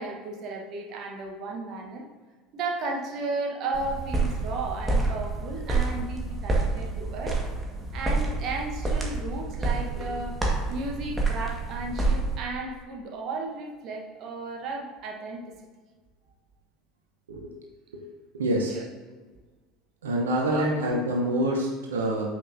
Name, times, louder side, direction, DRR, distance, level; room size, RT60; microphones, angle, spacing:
voice 1, 0.0-2.0 2.5-7.4 7.9-10.4 10.7-15.5 18.7-18.9 20.5-20.7, right 3 dB, 45° right, 1 dB, 1.2 m, -34 dB
sound 1, 3.7-12.4, right 3 dB, 10° right, 1.6 m, -28 dB
voice 2, 18.3-18.8 20.0-22.2, right 1 dB, 70° right, -1 dB, 1.0 m, -26 dB
8.7 x 6.2 x 2.7 m, 1.4 s
figure-of-eight pair, 70°, 0 cm